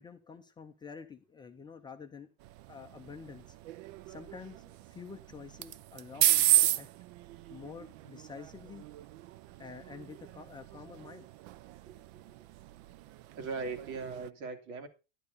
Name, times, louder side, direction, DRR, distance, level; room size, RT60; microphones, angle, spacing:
voice 1, 0.0-2.3 2.7-3.4 4.1-6.9 7.5-8.9 9.6-11.3, left 5 dB, 10° left, 4 dB, 0.5 m, -48 dB
sound 1, 2.4-14.3, right 14 dB, 55° right, 0.5 m, -34 dB
voice 2, 11.9-12.4 13.3-14.9, right 4 dB, 80° right, 4 dB, 2.8 m, -40 dB
11.0 x 10.5 x 4.0 m, 0.30 s
supercardioid pair, 160°, 41 cm